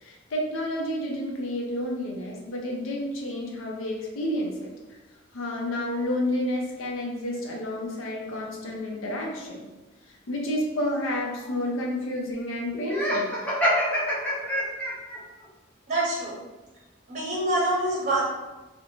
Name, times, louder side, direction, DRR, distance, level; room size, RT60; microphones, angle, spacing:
voice 1, 0.0-4.7 5.3-9.7 10.1-13.3, left 1 dB, 90° left, -1 dB, 0.6 m, -30 dB
Laughter, 12.9-15.2, equal, 5° left, 0.4 m, -26 dB
voice 2, 15.9-16.4 17.1-18.2, right 1 dB, 35° right, -5 dB, 0.7 m, -25 dB
2.5 x 2.1 x 2.9 m, 1.1 s
head